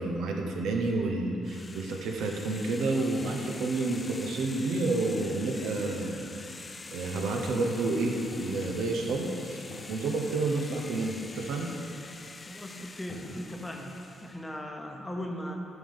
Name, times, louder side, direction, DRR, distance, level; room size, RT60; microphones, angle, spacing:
voice 1, 0.0-6.3 6.9-9.6 9.9-11.7, right 3 dB, 80° right, 1 dB, 0.8 m, -30 dB
sound 1, 1.4-14.5, left 3 dB, 25° left, 0.4 m, -45 dB
sound 2, 8.3-9.3 9.6-12.5 12.8-13.7, left 4 dB, 75° left, 0.8 m, -47 dB
voice 2, 12.5-13.9 14.2-15.6, equal, 10° left, 2 dB, 0.8 m, -38 dB
9.1 x 3.7 x 5.2 m, 2.8 s
cardioid pair, 90°, 0 cm